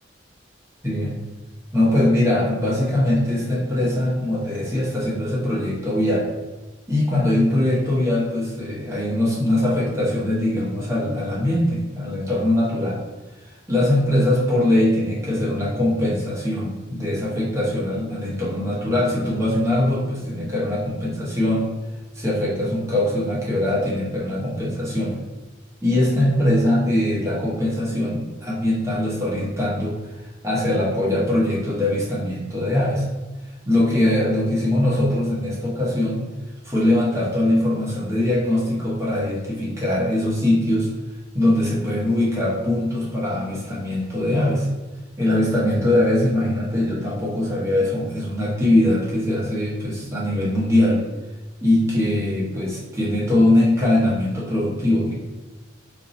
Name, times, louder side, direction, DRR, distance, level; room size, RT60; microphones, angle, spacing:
voice 1, 0.8-1.2 1.7-6.3 6.9-13.0 13.4-21.7 22.1-25.1 25.8-30.0 30.4-33.0 33.7-36.3 36.6-40.9 41.3-44.7 45.2-51.0 51.6-55.1, left 1 dB, 15° right, -6 dB, 0.8 m, -21 dB
2.5 x 2.2 x 4.0 m, 1.2 s
head